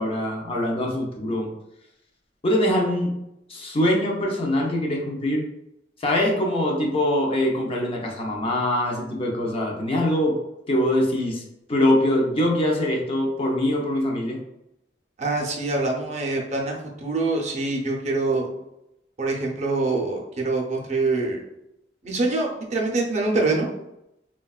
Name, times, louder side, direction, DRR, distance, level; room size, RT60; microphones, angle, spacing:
voice 1, 0.0-1.5 2.4-3.1 3.5-5.5 6.0-10.4 10.7-11.4 11.7-14.4, left 1 dB, 30° left, 0 dB, 0.5 m, -23 dB
voice 2, 15.2-18.5 19.2-21.4 22.0-23.7, right 3 dB, 40° right, 0 dB, 0.5 m, -25 dB
3.4 x 2.2 x 2.3 m, 0.85 s
head